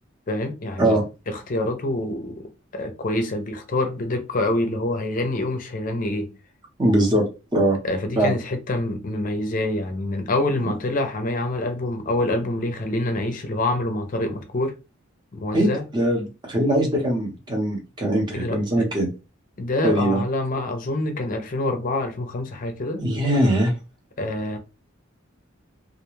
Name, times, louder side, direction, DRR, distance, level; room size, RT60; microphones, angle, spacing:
voice 1, 0.3-1.0 1.3-2.4 2.7-6.3 7.8-14.7 15.3-15.9 18.3-18.9 19.6-23.0 24.2-24.6, left 2 dB, 40° left, 0.5 m, -26 dB
voice 2, 6.8-7.3 7.5-7.8 8.2-8.3 10.6-10.7 15.5-19.1 19.8-20.2 23.0-23.7, right 1 dB, 20° right, 0.8 m, -21 dB
2.4 x 2.2 x 3.0 m
head